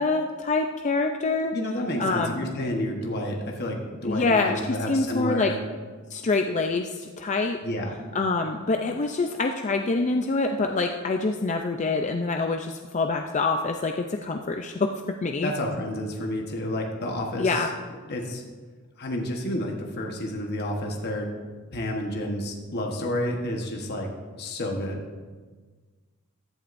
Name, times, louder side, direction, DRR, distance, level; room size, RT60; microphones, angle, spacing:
voice 1, 0.0-1.5 2.0-2.4 4.0-5.5 6.1-7.6 8.1-14.9 15.2-15.5 17.4-17.7, left 3 dB, 35° left, 4 dB, 0.5 m, -25 dB
voice 2, 1.4-5.6 7.6-7.9 15.4-17.7 18.1-18.4 19.0-21.3 21.7-24.1 24.4-25.0, left 1 dB, 50° left, 0 dB, 1.2 m, -30 dB
15.0 x 11.0 x 2.6 m, 1.4 s
head